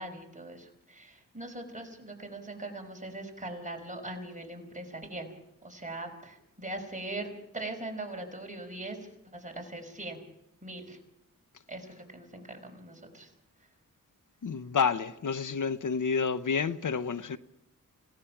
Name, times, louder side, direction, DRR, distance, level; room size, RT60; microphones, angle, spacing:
voice 1, 0.0-5.3 5.6-10.2 10.6-11.0 11.7-13.3 13.6-13.7, right 2 dB, 25° right, 5.0 m, -41 dB
voice 2, 14.4-17.4, left 5 dB, 70° left, 0.8 m, -29 dB
27.5 x 17.0 x 5.9 m
wide cardioid pair, 65°, 32 cm